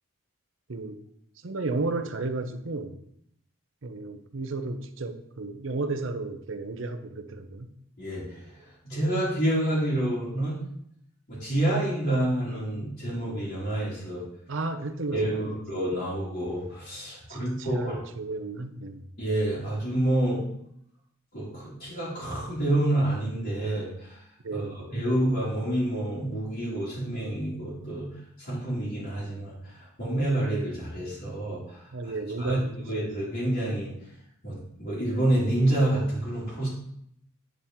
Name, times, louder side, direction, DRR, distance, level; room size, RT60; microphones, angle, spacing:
voice 1, 1.4-3.0 3.8-7.7 14.5-15.6 17.3-19.0 24.4-24.9 31.9-32.7, right 3 dB, 60° right, 8 dB, 0.7 m, -33 dB
voice 2, 8.0-10.6 11.3-14.2 15.1-18.0 19.2-20.5 21.3-24.2 24.5-24.6 24.9-28.1 28.4-32.1 32.4-32.6 32.9-33.9 34.4-36.7, right 1 dB, 50° left, -12 dB, 2.5 m, -28 dB
9.5 x 4.3 x 3.7 m, 0.72 s
head